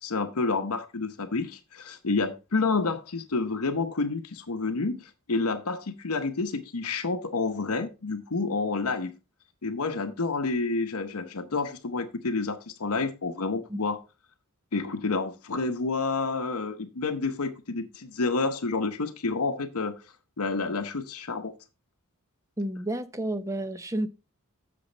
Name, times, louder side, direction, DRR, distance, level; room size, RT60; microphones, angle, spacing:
voice 1, 0.0-9.1 9.6-14.0 14.7-19.9 20.4-21.5, left 3 dB, 90° left, 0.9 m, -29 dB
voice 2, 22.6-24.1, right 1 dB, 15° right, 0.7 m, -31 dB
8.6 x 6.9 x 4.0 m
head